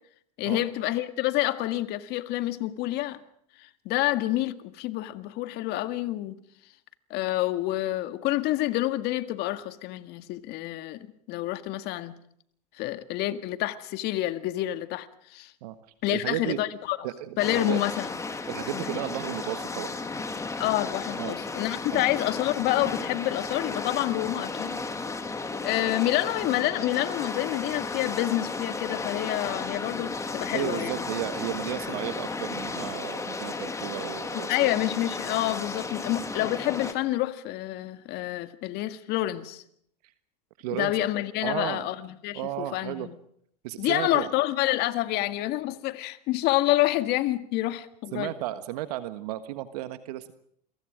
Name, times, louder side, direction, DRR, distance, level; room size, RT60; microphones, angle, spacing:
voice 1, 0.4-3.2 3.6-6.4 7.1-12.2 12.8-15.5 16.0-17.0 17.4-18.1 18.7-19.0 20.6-24.8 25.6-31.0 34.3-39.6 40.7-42.4 42.7-43.1 43.8-48.3, left 15 dB, 55° left, 1.9 m, -28 dB
voice 2, 16.1-16.6 17.0-17.8 18.5-19.9 21.2-21.3 21.9-22.0 30.5-34.7 40.6-41.1 41.4-41.9 42.3-43.1 43.6-44.3 48.1-50.3, right 14 dB, 70° right, 1.5 m, -34 dB
sound 1, 17.4-36.9, left 3 dB, 15° left, 2.7 m, -34 dB
28.5 x 23.5 x 5.1 m
hypercardioid pair, 100°, 21 cm